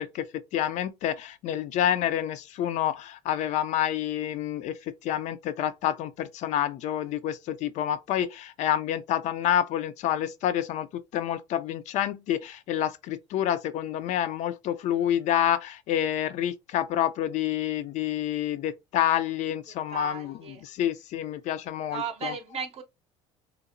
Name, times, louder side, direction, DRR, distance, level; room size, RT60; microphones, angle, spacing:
voice 1, 0.0-22.3, left 11 dB, 55° left, 0.4 m, -28 dB
voice 2, 19.9-20.6 21.9-22.8, right 6 dB, 45° right, 0.6 m, -35 dB
2.9 x 2.0 x 2.5 m
supercardioid pair, 80°, 15 cm